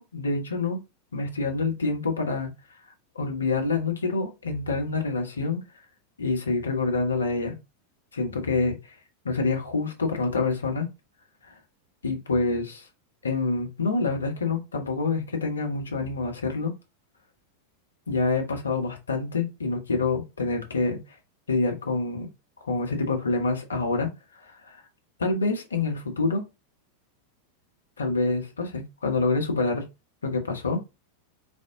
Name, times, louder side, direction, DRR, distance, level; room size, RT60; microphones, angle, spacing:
voice 1, 0.1-0.8 1.1-2.5 3.1-5.6 6.2-7.6 8.1-8.7 9.2-10.9 12.0-12.9 13.2-16.7 18.1-21.0 21.5-22.3 22.6-24.1 24.7-24.8 25.2-26.4 28.0-29.8 30.2-30.8, left 3 dB, 75° left, 1.1 m, -26 dB
4.0 x 3.6 x 3.7 m
figure-of-eight pair, 90°, 0 cm